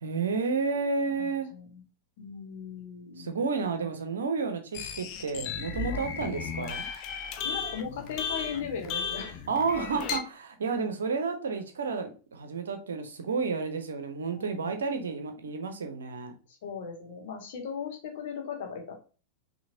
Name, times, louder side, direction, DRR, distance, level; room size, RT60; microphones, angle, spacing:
voice 1, 0.0-1.5 3.2-6.9 9.5-16.3, right 4 dB, 65° right, 0.8 m, -31 dB
voice 2, 1.1-1.8 2.2-3.4 3.8-3.9 5.9-6.1 7.4-9.5 9.7-10.2 14.3-14.7 16.5-18.9, left 6 dB, 55° left, 1.5 m, -38 dB
sound 1, 4.7-10.2, left 6 dB, 40° left, 0.7 m, -35 dB
5.9 x 2.9 x 2.8 m
figure-of-eight pair, 90°, 0 cm